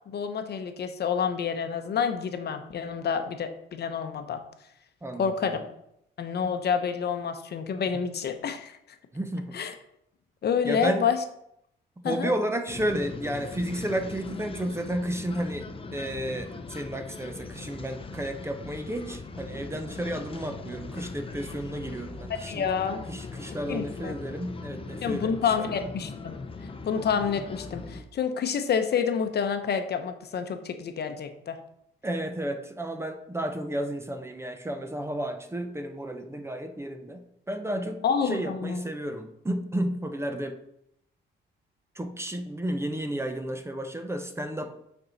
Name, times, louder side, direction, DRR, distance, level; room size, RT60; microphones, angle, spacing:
voice 1, 0.1-4.4 5.2-5.7 6.2-8.8 9.5-9.7 10.4-11.2 12.0-12.3 22.3-23.0 23.7-24.1 25.0-26.4 26.8-31.6 38.0-38.8, left 6 dB, 55° left, 7 dB, 0.9 m, -28 dB
voice 2, 5.0-5.6 9.1-9.6 10.6-11.0 12.0-22.7 23.1-25.9 32.0-40.6 41.9-44.7, right 1 dB, 15° right, 7 dB, 0.8 m, -32 dB
sound 1, 12.7-28.0, left 3 dB, 25° left, 0.8 m, -40 dB
8.6 x 4.5 x 4.1 m, 0.76 s
cardioid pair, 90°, 20 cm